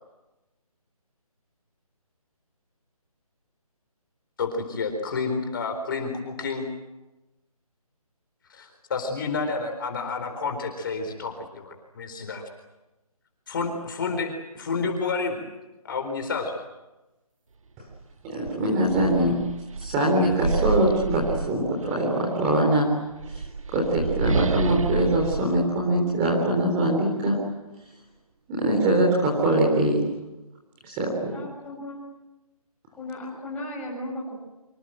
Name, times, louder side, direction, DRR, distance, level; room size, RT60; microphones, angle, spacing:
voice 1, 4.4-6.7 8.5-12.4 13.5-15.4 15.8-16.5 20.1-20.3, left 4 dB, 35° left, 4 dB, 4.1 m, -30 dB
sound 1, 17.9-18.0 18.4-22.1 23.0-26.6, right 4 dB, 60° right, 1.6 m, -29 dB
voice 2, 18.2-19.3 19.8-22.9 23.3-27.4 27.8-27.9 28.5-30.0 30.8-31.3, right 1 dB, 15° right, -1 dB, 3.7 m, -23 dB
voice 3, 31.2-32.0 32.9-34.4, left 1 dB, 5° left, -4 dB, 6.7 m, -36 dB
26.0 x 26.0 x 7.8 m, 1.0 s
figure-of-eight pair, 165°, 19 cm